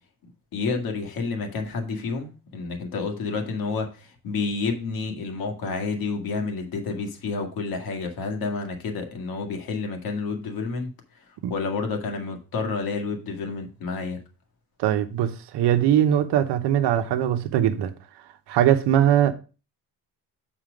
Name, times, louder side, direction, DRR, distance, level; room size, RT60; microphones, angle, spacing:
voice 1, 0.5-10.9 11.5-14.2, left 4 dB, 60° left, 1.8 m, -29 dB
voice 2, 14.8-17.9 18.5-19.3, right 10 dB, 75° right, 0.9 m, -21 dB
7.5 x 4.4 x 5.0 m
cardioid pair, 175°, 41 cm